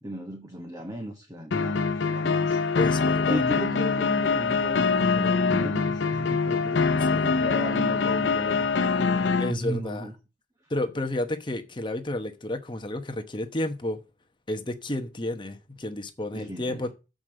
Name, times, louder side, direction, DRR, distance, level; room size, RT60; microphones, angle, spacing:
voice 1, 0.0-2.6 3.3-10.1 16.3-16.9, equal, 20° right, 1.3 m, -36 dB
sound 1, 1.5-9.5, left 4 dB, 85° left, 0.7 m, -24 dB
voice 2, 2.7-3.4 7.1-7.3 9.4-10.1 10.7-14.0 14.5-16.9, left 1 dB, 25° left, 1.0 m, -31 dB
7.8 x 5.3 x 7.6 m
head